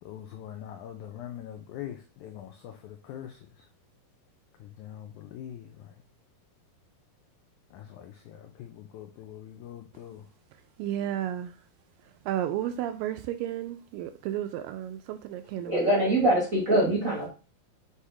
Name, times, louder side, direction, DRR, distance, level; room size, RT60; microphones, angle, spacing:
voice 1, 0.0-3.4 4.6-5.9 7.7-10.2, left 10 dB, 85° left, 5 dB, 1.7 m, -43 dB
voice 2, 10.8-11.5 12.3-15.9, right 11 dB, 80° right, 8 dB, 2.1 m, -32 dB
voice 3, 15.7-17.3, right 1 dB, 50° right, -3 dB, 0.9 m, -23 dB
8.3 x 2.9 x 4.8 m, 0.33 s
omnidirectional pair, 4.3 m